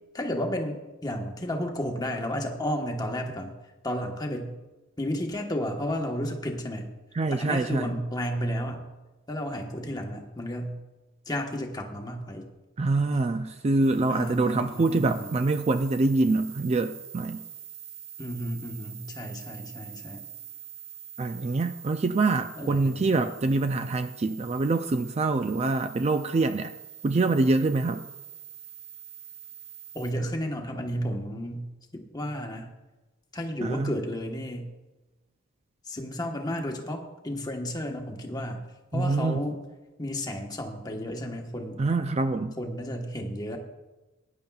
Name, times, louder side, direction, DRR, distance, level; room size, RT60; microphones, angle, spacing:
voice 1, 0.1-3.6 3.8-4.5 5.0-6.9 7.3-8.9 9.3-10.8 11.3-12.5 14.1-15.3 18.2-20.2 22.6-23.1 29.9-31.6 31.9-32.7 33.3-34.6 35.8-38.6 38.9-39.6 40.0-41.8 42.6-43.6, equal, 20° left, 2 dB, 1.2 m, -32 dB
voice 2, 7.1-7.9 12.8-17.4 21.2-26.7 27.0-28.0 33.6-33.9 38.9-39.5 41.8-42.5, right 3 dB, 30° right, 8 dB, 0.3 m, -25 dB
sound 1, 13.8-30.1, right 8 dB, 60° right, 0.8 m, -45 dB
19.0 x 10.5 x 2.3 m, 1.1 s
head